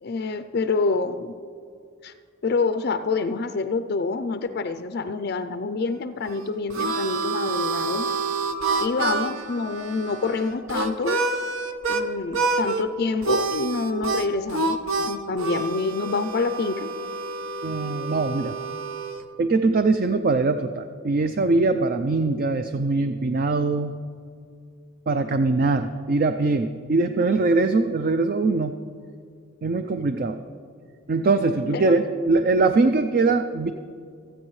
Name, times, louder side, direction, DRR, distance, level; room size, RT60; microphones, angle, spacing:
voice 1, 0.0-1.3 2.0-2.1 2.4-8.1 8.8-11.2 11.9-14.8 15.0-16.9 31.7-32.0, left 4 dB, 50° left, 9 dB, 0.4 m, -27 dB
Harmonica, 6.2-12.0 12.3-12.8 13.2-19.2, right 3 dB, 70° right, 0.8 m, -28 dB
voice 2, 17.6-18.6 19.4-24.0 25.1-28.8 29.6-30.4 31.1-33.7, right 3 dB, 45° right, 9 dB, 0.4 m, -22 dB
25.5 x 8.8 x 3.2 m, 2.2 s
head